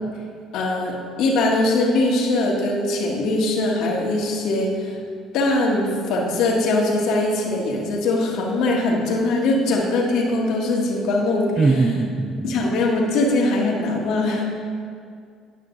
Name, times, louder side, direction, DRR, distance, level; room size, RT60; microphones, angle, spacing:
voice 1, 0.5-5.0 5.3-11.5 12.4-14.4, left 2 dB, 70° left, -1 dB, 1.5 m, -21 dB
voice 2, 11.6-12.6, right 3 dB, 30° right, 8 dB, 0.5 m, -21 dB
11.0 x 5.7 x 3.8 m, 2.2 s
supercardioid pair, 80°, 0 cm